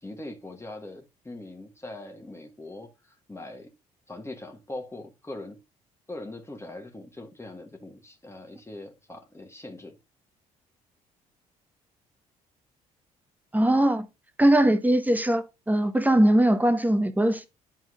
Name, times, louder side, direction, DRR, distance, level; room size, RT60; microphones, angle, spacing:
voice 1, 0.0-3.7 4.1-5.6 6.1-10.0, left 2 dB, 15° left, 1.6 m, -41 dB
voice 2, 13.5-14.1 14.4-17.5, right 1 dB, 10° right, 1.1 m, -21 dB
11.0 x 4.5 x 2.4 m
figure-of-eight pair, 50°, 18 cm